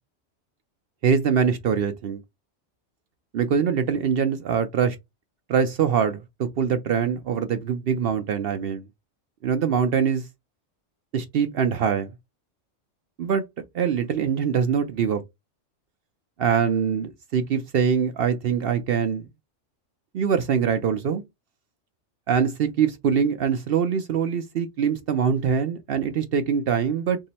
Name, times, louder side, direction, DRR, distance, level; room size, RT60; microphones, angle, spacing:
voice 1, 1.0-2.2 3.3-5.0 5.5-8.8 9.4-10.2 11.1-12.1 13.2-13.4 13.7-15.2 16.4-19.3 20.1-21.2 22.3-27.2, right 7 dB, 60° right, 0.6 m, -23 dB
3.6 x 2.0 x 4.1 m
omnidirectional pair, 1.3 m